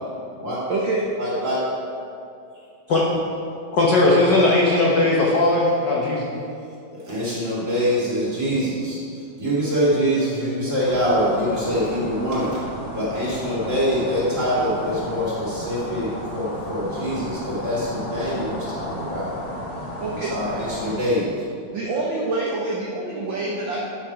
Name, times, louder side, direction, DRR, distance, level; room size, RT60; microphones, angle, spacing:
voice 1, 0.1-1.0 20.0-20.3 21.7-23.8, right 2 dB, 70° right, -4 dB, 1.1 m, -27 dB
voice 2, 1.2-1.7 7.0-9.0 9.4-12.6 12.9-19.4 20.3-21.3, equal, 25° right, -8 dB, 2.8 m, -24 dB
voice 3, 3.7-6.3, left 2 dB, 70° left, -4 dB, 1.0 m, -18 dB
sound 1, 10.8-21.0, equal, 45° left, 3.2 m, -33 dB
12.0 x 6.5 x 4.7 m, 2.5 s
omnidirectional pair, 3.5 m